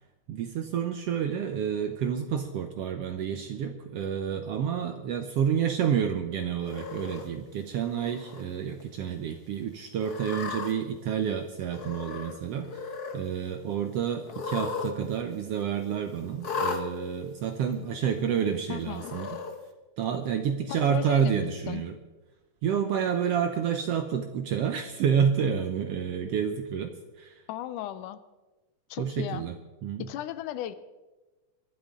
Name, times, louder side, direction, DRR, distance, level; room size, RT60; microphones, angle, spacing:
voice 1, 0.3-12.8 13.1-19.4 20.0-21.9 22.6-26.9 27.2-27.4 29.0-29.5 29.8-30.1, right 8 dB, 75° right, 7 dB, 1.5 m, -29 dB
Cat, 6.7-7.3 8.0-8.4 8.8-8.9 10.0-10.7 11.7-12.4 12.6-13.2 14.3-14.9 15.2-15.3 16.4-16.8 17.7-17.8 18.9-19.5, left 5 dB, 55° left, 1.1 m, -35 dB
voice 2, 18.7-19.1 20.7-21.8 27.5-28.2 28.9-29.4 30.0-30.8, left 12 dB, 85° left, 14 dB, 2.2 m, -36 dB
22.5 x 12.0 x 3.7 m, 1.2 s
omnidirectional pair, 3.5 m